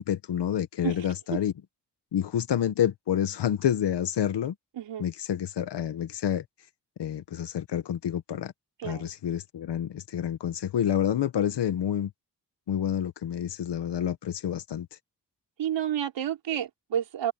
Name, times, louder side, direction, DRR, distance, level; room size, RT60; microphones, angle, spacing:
voice 1, 0.0-1.5 2.1-4.5 5.0-6.4 7.0-8.5 8.8-12.1 12.7-14.9, left 9 dB, 75° left, 1.6 m, -28 dB
voice 2, 4.8-5.1 8.8-9.1 15.6-17.3, right 10 dB, 85° right, 4.9 m, -30 dB
supercardioid pair, 50°, 42 cm